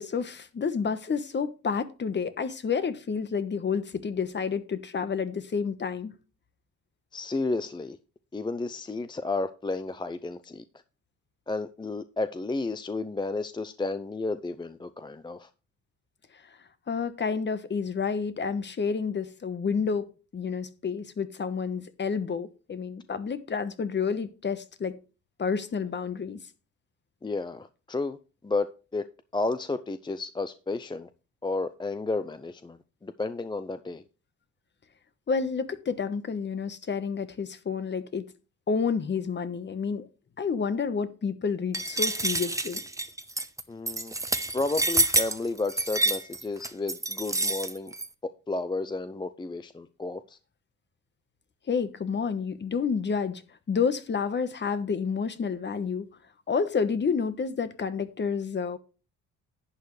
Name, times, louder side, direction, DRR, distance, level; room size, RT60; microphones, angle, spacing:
voice 1, 0.0-6.1 16.9-20.1 20.3-24.9 25.4-26.4 35.3-38.2 38.7-40.1 40.4-42.8 51.7-53.4 53.7-56.1 56.5-58.8, left 5 dB, 35° left, 1.2 m, -29 dB
voice 2, 7.1-8.0 8.3-10.6 11.5-15.5 27.2-28.2 28.4-29.1 29.3-31.1 31.4-32.8 33.0-34.0 43.7-44.1 44.5-47.9 48.2-50.4, left 3 dB, 15° left, 0.5 m, -32 dB
sound 1, 41.7-48.1, right 2 dB, 10° right, 0.9 m, -28 dB
11.0 x 8.3 x 3.2 m
cardioid pair, 90°, 30 cm